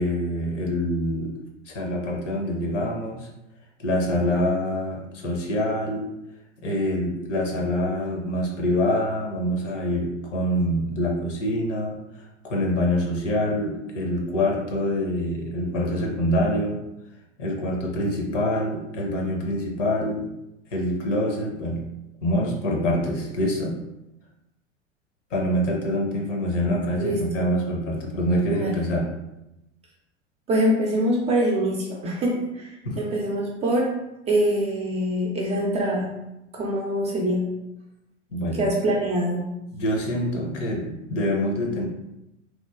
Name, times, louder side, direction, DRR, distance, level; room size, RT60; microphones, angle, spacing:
voice 1, 0.0-1.3 1.7-3.3 3.8-6.1 6.6-12.0 12.4-16.8 17.4-20.3 20.7-21.8 22.2-23.8 25.3-29.1 32.8-33.0 38.3-38.6 39.7-41.8, left 1 dB, 80° left, -1 dB, 0.8 m, -25 dB
voice 2, 30.5-33.9 34.3-36.1 36.5-37.4 38.5-39.4, right 1 dB, 20° right, -1 dB, 0.4 m, -24 dB
3.0 x 2.1 x 2.3 m, 0.91 s
hypercardioid pair, 90°, 36 cm